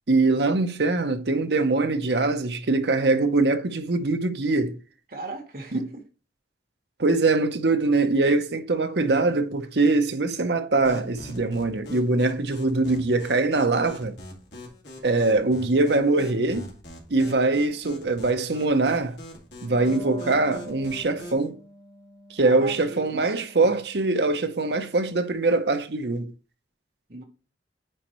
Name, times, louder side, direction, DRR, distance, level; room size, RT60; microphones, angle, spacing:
voice 1, 0.1-4.8 5.7-5.9 7.0-14.1 15.0-16.7 17.1-19.2 19.6-21.6 22.3-26.3, right 3 dB, 70° right, 0.8 m, -23 dB
voice 2, 5.1-6.0 22.4-23.8 27.1-27.2, right 2 dB, 55° right, 1.5 m, -38 dB
sound 1, 10.8-21.5, left 1 dB, 75° left, 2.3 m, -43 dB
Wind instrument woodwind instrument, 19.6-24.7, right 1 dB, 20° left, 1.6 m, -45 dB
9.0 x 4.5 x 3.1 m
head